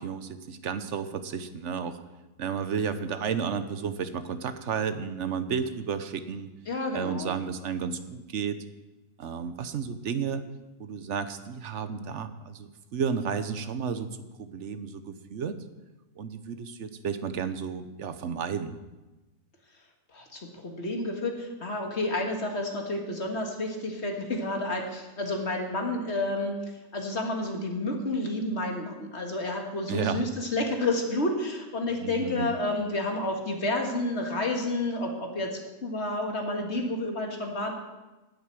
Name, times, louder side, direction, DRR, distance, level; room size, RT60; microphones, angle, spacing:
voice 1, 0.0-2.0 2.4-6.5 6.9-8.6 9.2-10.4 10.8-14.1 14.4-15.6 16.2-18.8 29.9-30.2 32.0-32.5, right 6 dB, 55° right, 11 dB, 1.1 m, -32 dB
voice 2, 6.7-7.3 20.1-26.6 26.9-37.7, left 2 dB, 45° left, 2 dB, 2.0 m, -30 dB
10.5 x 8.0 x 8.9 m, 1.1 s
omnidirectional pair, 1.6 m